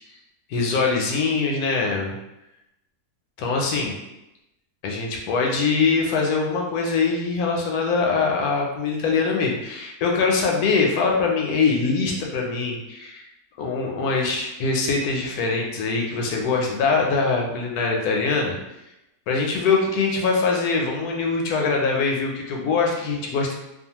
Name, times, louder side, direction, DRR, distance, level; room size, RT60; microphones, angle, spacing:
voice 1, 0.5-2.2 3.4-3.9 4.8-13.2 13.6-18.6 19.3-23.6, left 4 dB, 80° left, 0 dB, 1.0 m, -23 dB
2.5 x 2.4 x 2.8 m, 0.92 s
omnidirectional pair, 1.6 m